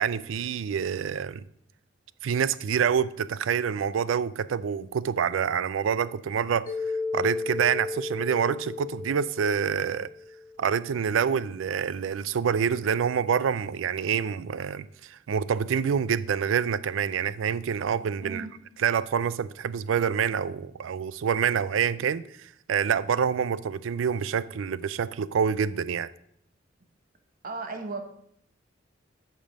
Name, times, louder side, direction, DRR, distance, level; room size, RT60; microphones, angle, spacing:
voice 1, 0.0-1.4 2.2-6.7 7.1-10.1 10.6-18.5 18.8-26.1, right 7 dB, 85° right, 0.4 m, -27 dB
Mallet percussion, 6.7-10.8, left 3 dB, 45° left, 1.0 m, -34 dB
voice 2, 27.4-28.0, right 3 dB, 45° right, 1.1 m, -35 dB
8.8 x 5.2 x 5.3 m
head